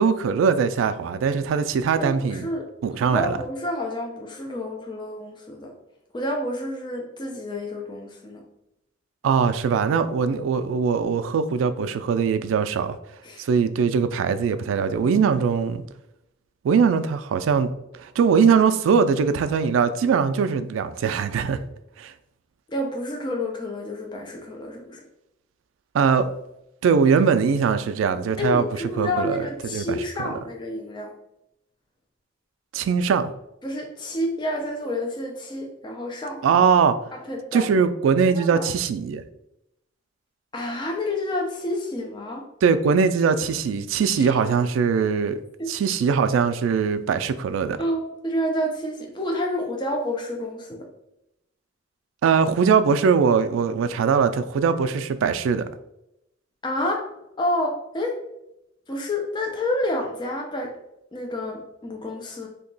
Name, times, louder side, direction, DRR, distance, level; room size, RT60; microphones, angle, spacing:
voice 1, 0.0-2.5 2.8-3.3 9.2-13.0 13.4-15.8 16.6-17.7 18.0-21.6 22.0-22.1 25.9-26.3 26.8-28.7 29.0-29.4 29.7-30.3 32.7-33.3 36.4-37.0 37.5-39.2 42.6-45.4 45.7-47.8 52.2-55.6, right 6 dB, 85° right, 10 dB, 0.3 m, -21 dB
voice 2, 2.0-2.7 2.9-5.7 6.1-8.4 13.2-13.5 22.7-25.0 28.4-31.1 33.6-36.4 37.1-37.7 38.4-38.7 40.5-42.4 44.2-44.4 45.6-45.7 47.8-50.9 56.6-57.1 57.4-58.2 58.9-60.7 61.1-62.5, left 1 dB, 25° left, 1 dB, 0.4 m, -29 dB
2.8 x 2.2 x 3.8 m, 0.83 s
head